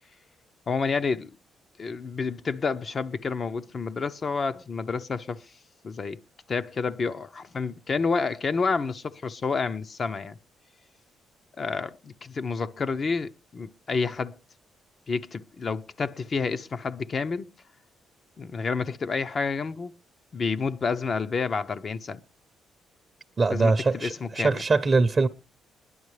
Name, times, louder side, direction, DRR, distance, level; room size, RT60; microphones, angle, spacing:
voice 1, 0.7-1.3 1.8-5.4 5.8-6.2 6.5-10.4 11.6-14.4 15.1-17.5 18.4-19.9 20.3-22.2 23.5-24.6, left 4 dB, 40° left, 0.6 m, -29 dB
voice 2, 23.4-25.3, right 3 dB, 35° right, 0.6 m, -22 dB
21.0 x 11.0 x 3.2 m
cardioid pair, 90°, 0 cm